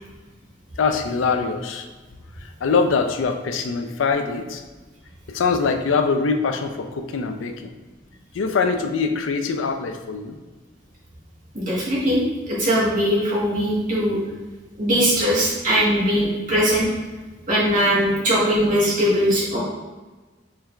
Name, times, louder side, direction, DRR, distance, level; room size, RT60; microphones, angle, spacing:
voice 1, 0.8-1.9 2.4-4.6 5.3-7.7 8.3-10.4, left 4 dB, 90° left, 6 dB, 0.4 m, -23 dB
voice 2, 11.5-14.2 14.8-16.9 17.5-19.6, equal, 45° right, -7 dB, 1.3 m, -20 dB
4.4 x 3.2 x 2.4 m, 1.3 s
head